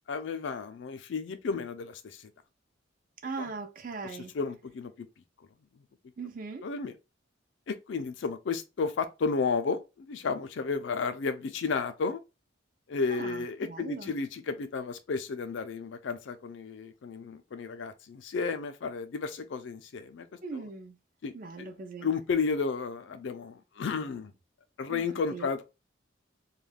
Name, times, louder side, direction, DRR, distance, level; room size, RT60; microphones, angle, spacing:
voice 1, 0.1-2.3 3.4-3.5 4.0-5.1 5.8-5.9 6.6-6.9 7.7-12.2 12.9-20.3 20.5-20.7 21.2-21.7 22.0-24.3 24.8-25.6, left 4 dB, 70° left, 0.4 m, -33 dB
voice 2, 3.2-4.3 6.2-6.7 13.1-14.1 20.4-20.9 21.3-22.1 24.9-25.1 25.3-25.5, right 4 dB, 45° right, 0.4 m, -39 dB
2.3 x 2.2 x 3.2 m
head